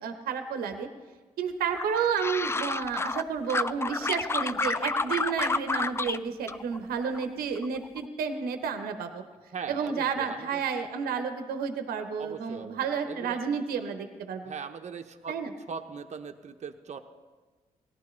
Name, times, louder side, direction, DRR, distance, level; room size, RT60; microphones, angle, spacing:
voice 1, 0.0-0.9 1.4-9.2 9.7-14.5 15.3-15.5, right 6 dB, 80° right, 7 dB, 0.8 m, -31 dB
sound 1, 1.8-3.2 3.5-6.2 6.5-7.2 7.6-8.0, left 3 dB, 15° left, 0.3 m, -30 dB
voice 2, 9.5-10.6 12.2-13.4 14.5-15.4 15.7-17.0, right 6 dB, 50° right, 6 dB, 0.8 m, -40 dB
17.5 x 11.0 x 3.2 m, 1.3 s
hypercardioid pair, 45°, 15 cm